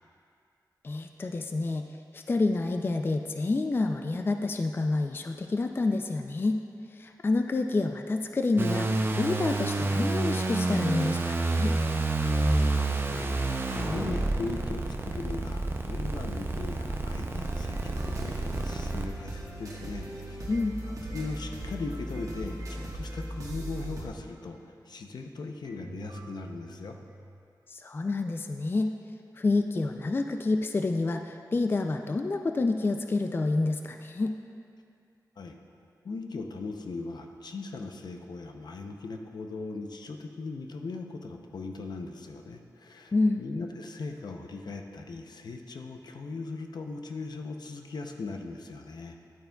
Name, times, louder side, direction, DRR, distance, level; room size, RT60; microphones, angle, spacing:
voice 1, 0.8-1.8 2.1-6.6 6.9-8.9 9.2-11.8 20.5-20.8 27.7-28.9 29.4-34.4 43.1-43.4, left 3 dB, 30° left, 6 dB, 0.3 m, -28 dB
sound 1, 8.6-19.1, right 2 dB, 30° right, 0.5 m, -29 dB
voice 2, 12.5-13.4 13.7-20.5 21.0-24.6 24.9-27.0 35.4-35.6 36.0-49.3, left 3 dB, 75° left, 4 dB, 0.6 m, -39 dB
sound 2, 17.4-24.1, right 1 dB, 55° right, 1.3 m, -39 dB
sound 3, 17.7-19.9 20.5-24.8 25.6-27.4, right 1 dB, 85° right, 1.3 m, -48 dB
11.5 x 9.0 x 2.3 m, 2.4 s
wide cardioid pair, 105°, 7 cm